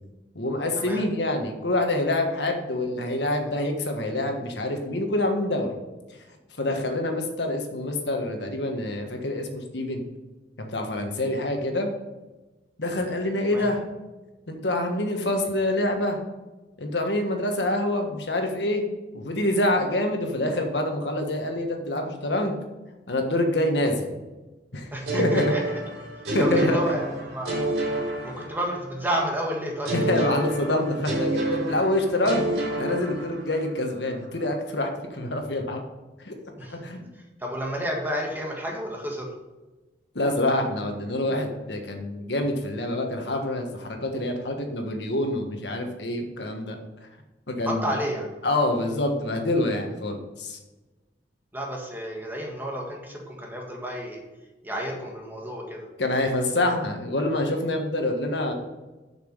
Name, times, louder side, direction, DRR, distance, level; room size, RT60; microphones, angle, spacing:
voice 1, 0.3-5.8 6.6-10.1 10.6-11.9 12.8-13.8 14.5-16.2 16.8-18.8 19.1-22.6 23.1-24.1 24.7-24.9 25.2-25.4 26.3-26.8 29.9-32.5 32.8-35.8 36.2-36.3 36.7-37.0 40.1-46.7 47.5-48.0 48.4-50.6 56.0-58.5, left 1 dB, 75° left, 3 dB, 1.5 m, -26 dB
voice 2, 24.9-25.8 26.4-27.7 28.2-29.9 36.6-36.9 37.1-39.3 47.6-48.4 51.5-54.2 54.6-55.9, equal, 10° right, -1 dB, 1.6 m, -31 dB
sound 1, 25.1-29.0 29.8-33.7, right 1 dB, 65° right, 3.4 m, -28 dB
7.2 x 6.0 x 6.7 m, 1.1 s
head